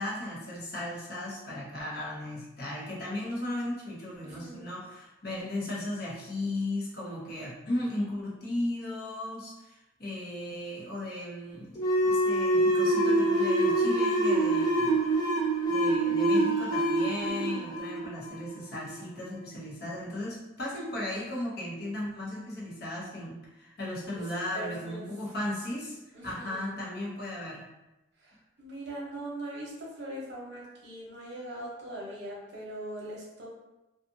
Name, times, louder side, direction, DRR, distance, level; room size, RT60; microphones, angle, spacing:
voice 1, 0.0-15.0 15.7-26.0 26.2-27.6, left 1 dB, 55° left, -5 dB, 0.8 m, -36 dB
voice 2, 4.2-4.7 17.3-17.7 24.5-25.0 26.1-26.7 28.6-33.5, right 1 dB, 65° right, -4 dB, 0.8 m, -41 dB
sound 1, 11.8-19.0, right 1 dB, 20° left, 0.5 m, -25 dB
2.6 x 2.4 x 2.6 m, 0.98 s
head